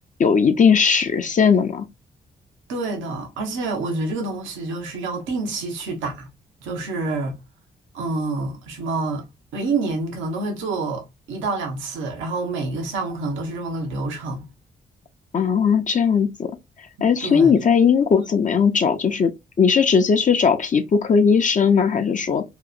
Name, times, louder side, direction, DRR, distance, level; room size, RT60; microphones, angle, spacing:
voice 1, 0.2-1.9 15.3-16.5 17.0-19.3 19.6-22.4, left 6 dB, 40° left, 0.5 m, -18 dB
voice 2, 2.7-6.3 6.6-7.4 7.9-9.2 9.5-14.5 17.0-17.5, right 3 dB, 80° right, 0.7 m, -27 dB
2.8 x 2.0 x 2.3 m
supercardioid pair, 50°, 19 cm